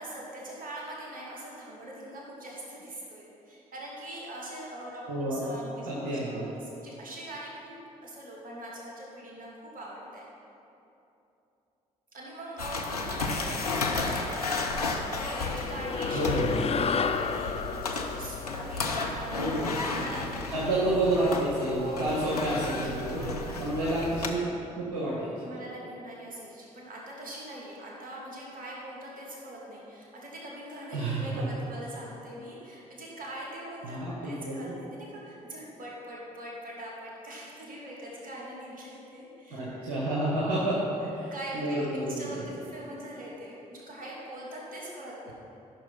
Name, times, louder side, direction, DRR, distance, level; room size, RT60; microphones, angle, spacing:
voice 1, 0.0-10.3 12.1-20.6 21.8-22.3 23.1-23.7 25.4-39.9 40.4-40.8 41.3-41.7 42.1-45.3, right 1 dB, 45° right, -4 dB, 2.8 m, -42 dB
voice 2, 5.1-5.4 5.9-6.4 16.1-16.8 19.4-19.9 20.5-23.2 23.6-24.4 24.8-25.3 30.9-31.4 33.8-34.6 39.6-40.8 41.1-42.4, right 1 dB, 70° right, -7 dB, 1.5 m, -29 dB
sound 1, 12.6-24.3, left 3 dB, 85° left, 0.6 m, -33 dB
sound 2, 15.4-20.1, left 5 dB, 30° left, 0.5 m, -32 dB
13.5 x 6.0 x 5.6 m, 2.9 s
figure-of-eight pair, 40°, 19 cm